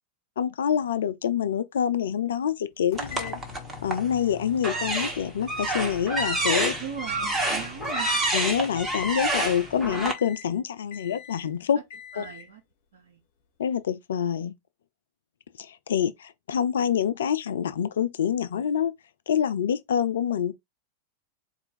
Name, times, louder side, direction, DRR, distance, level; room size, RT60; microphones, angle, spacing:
voice 1, 0.4-3.4 3.8-6.7 8.3-11.8 12.2-12.3 13.6-14.5 15.6-18.9 19.3-20.5, left 8 dB, 65° left, 0.4 m, -26 dB
sound 1, 2.9-8.6 8.9-9.5 9.9-10.6 10.9-11.5 11.9-12.5, left 9 dB, 45° left, 1.5 m, -44 dB
sound 2, 3.0-4.1 4.6-10.1, right 2 dB, 10° right, 1.4 m, -28 dB
voice 2, 6.8-8.2 12.1-12.6 12.9-13.2, right 8 dB, 65° right, 0.9 m, -39 dB
4.4 x 2.5 x 4.1 m
figure-of-eight pair, 90°, 0 cm